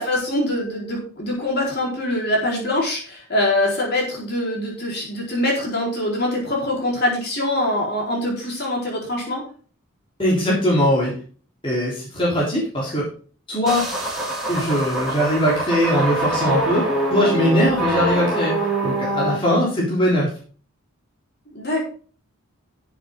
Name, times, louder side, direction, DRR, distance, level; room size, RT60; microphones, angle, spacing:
voice 1, 0.0-9.4 21.5-21.8, left 1 dB, 45° left, -2 dB, 4.5 m, -24 dB
voice 2, 10.2-11.1 11.6-13.1 13.5-13.8 14.5-20.3, equal, 25° left, -6 dB, 3.7 m, -20 dB
sound 1, 13.7-19.4, right 2 dB, ahead, 3.1 m, -24 dB
12.0 x 7.4 x 3.8 m, 0.42 s
head